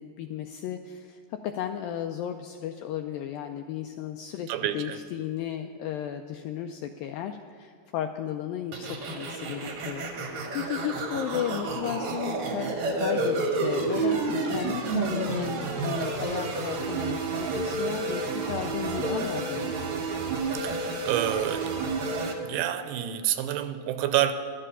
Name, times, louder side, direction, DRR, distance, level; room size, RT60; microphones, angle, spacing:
voice 1, 0.0-19.8, left 10 dB, 85° left, 6 dB, 2.0 m, -34 dB
voice 2, 4.5-5.0 20.5-21.7 22.4-24.3, right 12 dB, 85° right, 10 dB, 2.5 m, -28 dB
sound 1, 8.7-22.3, right 3 dB, 65° right, 1.4 m, -30 dB
12.5 x 11.5 x 5.5 m, 2.3 s
omnidirectional pair, 4.6 m